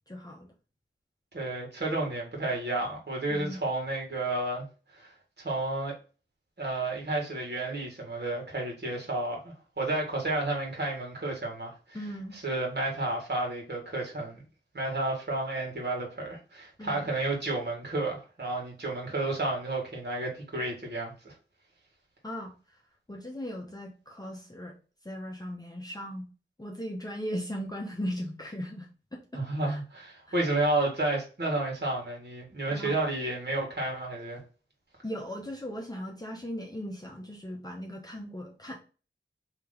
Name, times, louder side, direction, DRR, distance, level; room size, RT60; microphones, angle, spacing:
voice 1, 0.1-0.5 3.3-3.6 11.9-12.4 16.8-17.1 22.2-22.8 23.1-24.8 25.0-26.3 26.6-29.8 30.3-30.4 32.7-33.0 35.0-38.8, equal, 20° left, 0.8 m, -38 dB
voice 2, 1.3-4.7 4.9-5.1 5.4-5.9 6.6-11.7 12.3-14.4 14.7-21.3 29.3-34.4, right 2 dB, 55° right, 1.8 m, -31 dB
3.0 x 2.9 x 3.8 m
wide cardioid pair, 45°, 21 cm